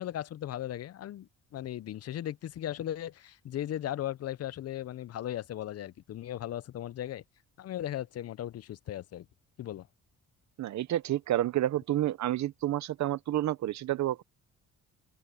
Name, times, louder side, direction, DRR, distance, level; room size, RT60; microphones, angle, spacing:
voice 1, 0.0-7.2 7.6-9.3 9.6-9.9, left 12 dB, 55° left, 0.6 m, -37 dB
voice 2, 10.6-14.2, right 13 dB, 65° right, 0.8 m, -29 dB
open air
cardioid pair, 90°, 30 cm